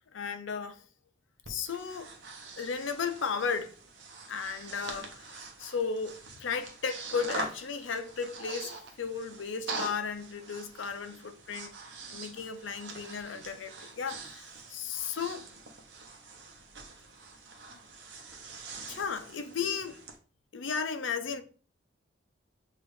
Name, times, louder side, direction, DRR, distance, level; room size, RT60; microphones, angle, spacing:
voice 1, 0.1-0.8 1.5-2.1 2.6-3.7 4.3-11.7 12.1-15.4 18.8-20.0 20.5-21.4, left 6 dB, 80° left, 0.5 m, -35 dB
Breathing, 1.4-20.2, right 3 dB, 65° right, 0.8 m, -44 dB
6.4 x 2.5 x 3.1 m
head